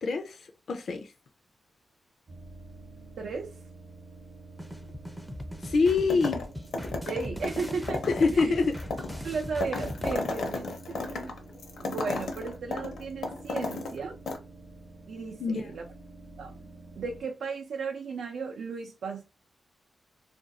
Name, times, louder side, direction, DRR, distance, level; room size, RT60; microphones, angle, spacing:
voice 1, 0.0-1.1 5.6-6.4 8.0-8.8 15.4-15.8, left 4 dB, 60° left, 0.4 m, -26 dB
sound 1, 2.3-17.2, right 2 dB, 35° right, 0.6 m, -48 dB
voice 2, 3.2-3.5 7.1-8.5 9.2-11.4 11.8-14.2 15.1-15.9 16.4-16.6 17.0-19.2, right 5 dB, 80° right, 0.5 m, -35 dB
sound 2, 4.6-10.1, equal, 5° left, 0.4 m, -40 dB
sound 3, 6.1-6.5 6.7-14.0 14.3-14.4, left 3 dB, 80° left, 0.8 m, -33 dB
2.5 x 2.3 x 4.0 m
wide cardioid pair, 160°, 0 cm